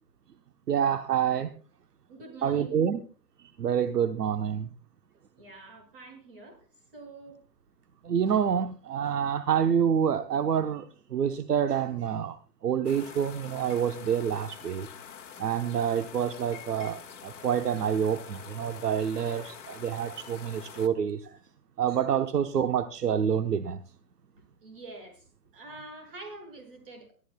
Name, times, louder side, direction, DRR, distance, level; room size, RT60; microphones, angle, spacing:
voice 1, 0.7-1.5 2.4-3.0 3.6-4.7 8.0-10.8 11.1-12.4 12.6-14.9 15.4-21.3 21.8-23.8, right 8 dB, 65° right, 8 dB, 1.1 m, -27 dB
voice 2, 2.1-2.8 5.4-6.6 6.9-7.4 24.6-25.3 25.5-27.1, right 2 dB, 35° right, 1 dB, 6.1 m, -46 dB
sound 1, 12.8-20.9, left 8 dB, 45° left, 1.7 m, -46 dB
24.5 x 13.0 x 2.2 m, 0.38 s
hypercardioid pair, 175°, 50 cm